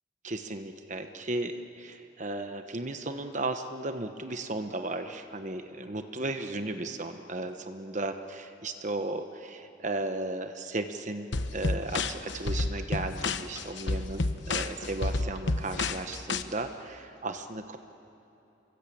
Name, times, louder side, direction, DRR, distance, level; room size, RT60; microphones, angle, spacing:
voice 1, 0.2-17.8, right 2 dB, 40° right, 7 dB, 1.0 m, -35 dB
sound 1, 11.3-16.4, left 3 dB, 65° left, 1.0 m, -30 dB
28.5 x 23.0 x 8.6 m, 3.0 s
head